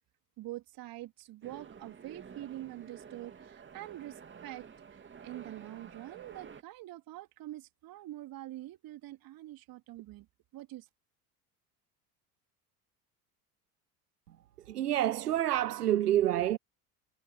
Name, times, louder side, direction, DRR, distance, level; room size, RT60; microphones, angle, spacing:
voice 1, 0.4-10.3 10.5-10.9, right 16 dB, 45° right, 3.9 m, -45 dB
sound 1, 1.4-6.6, right 6 dB, 25° right, 2.8 m, -50 dB
voice 2, 14.7-16.6, right 12 dB, 80° right, 0.7 m, -28 dB
figure-of-eight pair, 70°, 46 cm